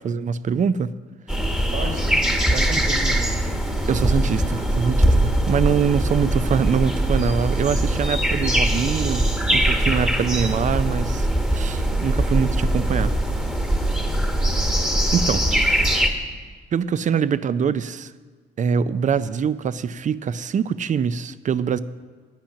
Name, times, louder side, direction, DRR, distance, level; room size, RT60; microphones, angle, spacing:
voice 1, 0.0-0.9 1.5-1.6 3.0-3.1 3.9-11.3 11.5-13.1 15.1-16.2 16.7-18.1 18.6-21.8, right 7 dB, 40° right, 16 dB, 0.4 m, -24 dB
sound 1, 1.3-16.1, right 1 dB, 5° right, 1.2 m, -21 dB
voice 2, 1.3-2.2 2.5-3.3 9.4-9.6 12.7-12.8 13.8-14.0, right 2 dB, 65° right, 1 dB, 3.5 m, -34 dB
10.0 x 9.0 x 5.8 m, 1.5 s
cardioid pair, 90°, 20 cm